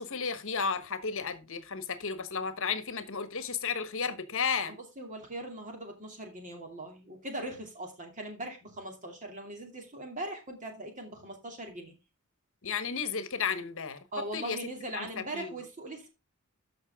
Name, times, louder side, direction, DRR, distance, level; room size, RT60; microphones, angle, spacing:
voice 1, 0.0-4.8 12.6-14.0 14.3-14.6 14.9-15.5, left 5 dB, 60° left, 1.2 m, -33 dB
voice 2, 4.7-11.9 14.1-16.1, right 1 dB, 35° right, 2.6 m, -40 dB
13.0 x 5.7 x 3.6 m
head